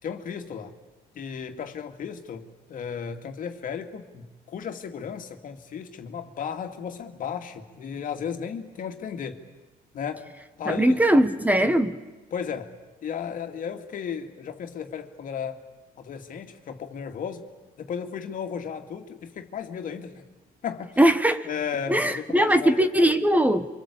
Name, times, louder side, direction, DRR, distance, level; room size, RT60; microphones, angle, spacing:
voice 1, 0.0-0.7 1.1-9.4 9.9-10.3 10.6-11.3 11.6-11.7 12.3-12.7 13.0-15.6 16.0-17.5 17.8-20.2 20.6-21.0 21.4-22.8, left 7 dB, 55° left, 6 dB, 2.3 m, -34 dB
voice 2, 10.7-11.9 21.0-21.5 21.9-23.7, right 1 dB, 10° right, 10 dB, 1.3 m, -20 dB
28.0 x 25.0 x 8.4 m, 1.2 s
cardioid pair, 110°, 17 cm